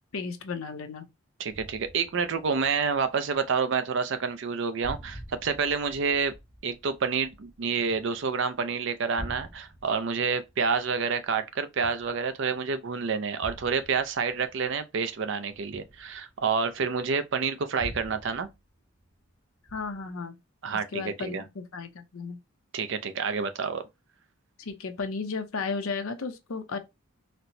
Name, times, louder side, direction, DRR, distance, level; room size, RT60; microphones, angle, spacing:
voice 1, 0.1-1.1 19.7-20.3 20.9-22.4 24.6-26.8, left 4 dB, 75° left, 0.6 m, -34 dB
voice 2, 1.4-6.3 6.6-18.5 20.6-21.4 22.7-23.8, right 5 dB, 55° right, 0.4 m, -28 dB
sound 1, 1.5-3.8 4.0-4.5 4.8-8.5 8.9-12.5 13.4-17.0 17.8-19.3 19.7-20.2, equal, 40° right, 1.1 m, -46 dB
4.2 x 2.1 x 2.6 m
head